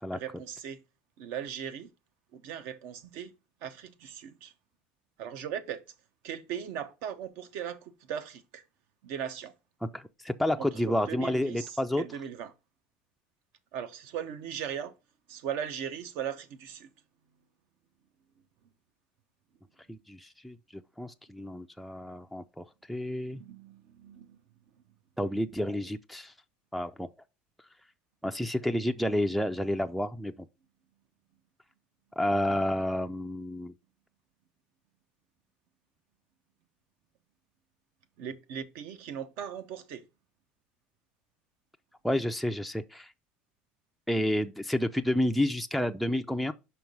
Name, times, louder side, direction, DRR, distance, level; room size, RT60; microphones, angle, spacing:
voice 1, 0.1-0.8 1.2-1.9 2.3-3.3 3.6-4.5 5.2-5.8 6.2-8.6 9.0-9.5 10.6-12.5 13.7-14.9 15.3-16.9 23.3-24.4 32.5-32.6 38.2-40.0, right 8 dB, 70° right, 0.8 m, -38 dB
voice 2, 9.8-12.0 19.9-23.4 25.2-26.3 26.7-27.1 28.2-30.3 32.2-33.7 42.0-43.1 44.1-46.5, left 1 dB, ahead, 0.3 m, -30 dB
5.5 x 4.5 x 5.3 m
cardioid pair, 140°, 4 cm